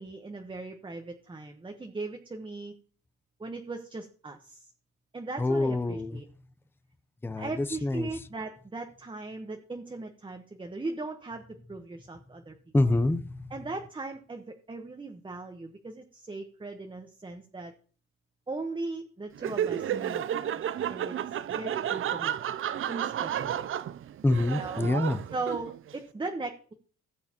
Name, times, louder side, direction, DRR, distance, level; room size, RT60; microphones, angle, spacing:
voice 1, 0.0-2.7 3.4-4.7 5.1-6.2 7.4-12.5 13.5-17.7 18.5-22.3 22.9-23.7 24.6-24.9 25.3-26.7, right 3 dB, 15° right, 1.0 m, -38 dB
voice 2, 5.4-6.2 7.2-8.1 12.7-13.5 24.2-25.2, left 2 dB, 5° left, 0.6 m, -26 dB
Laughter, 19.3-25.9, right 10 dB, 45° right, 0.4 m, -32 dB
16.0 x 6.5 x 2.9 m
cardioid pair, 90°, 30 cm